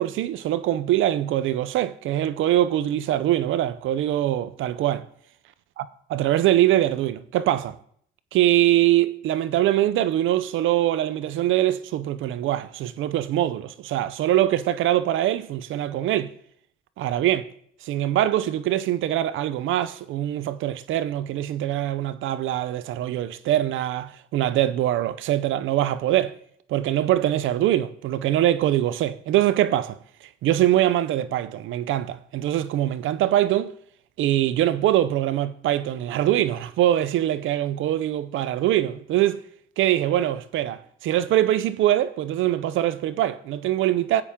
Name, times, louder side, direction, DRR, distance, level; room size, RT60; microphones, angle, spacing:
voice 1, 0.0-5.0 5.8-5.9 6.1-7.8 8.3-16.3 17.0-17.5 17.8-26.4 26.7-30.0 30.4-33.7 34.2-39.4 39.8-44.2, right 13 dB, 80° right, 0.5 m, -23 dB
11.5 x 8.6 x 3.6 m
cardioid pair, 90°, 20 cm